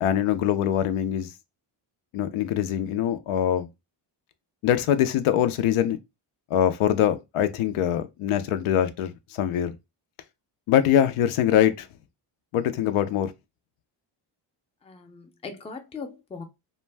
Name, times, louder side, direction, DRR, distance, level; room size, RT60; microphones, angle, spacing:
voice 1, 0.0-1.3 2.1-3.7 4.6-6.0 6.5-9.8 10.7-11.9 12.5-13.3, left 10 dB, 90° left, 0.5 m, -23 dB
voice 2, 14.8-16.4, left 4 dB, 15° left, 0.4 m, -39 dB
2.5 x 2.2 x 3.2 m
cardioid pair, 105°, 48 cm